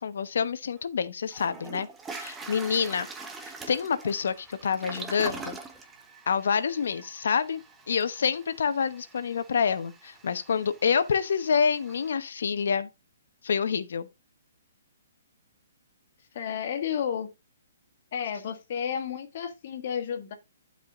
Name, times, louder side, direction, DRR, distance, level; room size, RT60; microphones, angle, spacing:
voice 1, 0.0-1.9 2.1-3.1 3.4-5.6 6.3-7.6 7.9-12.9 13.4-14.1, left 6 dB, 60° left, 1.1 m, -27 dB
Toilet flush, 0.8-0.9 1.3-12.1, right 4 dB, 5° right, 0.9 m, -44 dB
voice 2, 16.3-17.3 18.1-20.3, left 8 dB, 40° left, 1.8 m, -32 dB
11.5 x 5.0 x 3.8 m
hypercardioid pair, 175°, 0 cm